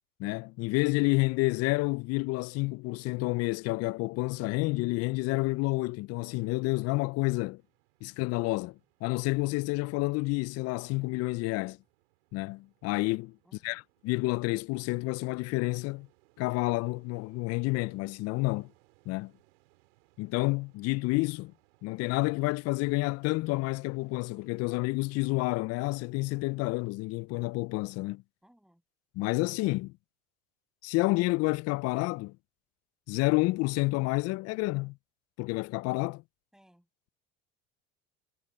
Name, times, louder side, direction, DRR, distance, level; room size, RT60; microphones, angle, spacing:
voice 1, 0.2-7.6 8.0-11.8 12.3-13.3 13.6-16.1 16.4-18.7 19.1-19.3 20.2-21.5 21.8-28.2 29.2-29.9 30.8-32.3 33.1-35.0 35.4-36.2, left 23 dB, 55° left, 0.4 m, -29 dB
sound 1, 7.6-24.7, right 24 dB, 85° right, 4.3 m, -68 dB
voice 2, 13.4-13.8 28.4-28.8 36.5-36.9, equal, ahead, 6.6 m, -63 dB
supercardioid pair, 95°, 30 cm